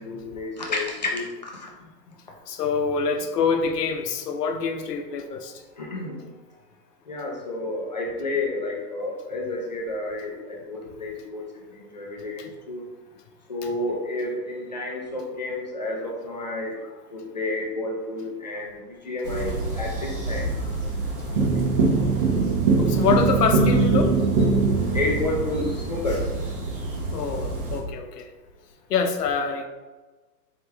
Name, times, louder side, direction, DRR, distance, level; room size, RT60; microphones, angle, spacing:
voice 1, 0.0-1.7 5.7-6.3 7.1-12.9 13.5-16.8 17.1-20.5 21.4-21.6 24.9-26.3, left 2 dB, 30° left, -2 dB, 0.4 m, -30 dB
voice 2, 2.5-5.5 12.4-12.5 22.2-22.3 22.8-24.1 27.1-28.3 28.9-29.7, left 5 dB, 70° left, 6 dB, 0.8 m, -25 dB
sound 1, 19.2-27.8, right 4 dB, 35° right, 0.8 m, -23 dB
4.4 x 3.2 x 3.4 m, 1.2 s
hypercardioid pair, 170°, 50 cm